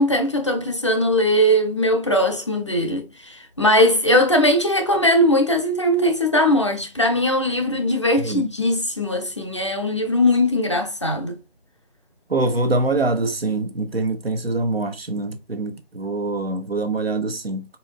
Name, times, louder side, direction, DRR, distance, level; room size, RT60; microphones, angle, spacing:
voice 1, 0.0-11.4, left 1 dB, 30° left, 0.6 m, -20 dB
voice 2, 12.3-17.6, right 2 dB, 70° right, 1.2 m, -24 dB
4.5 x 4.4 x 2.2 m
figure-of-eight pair, 160°, 30 cm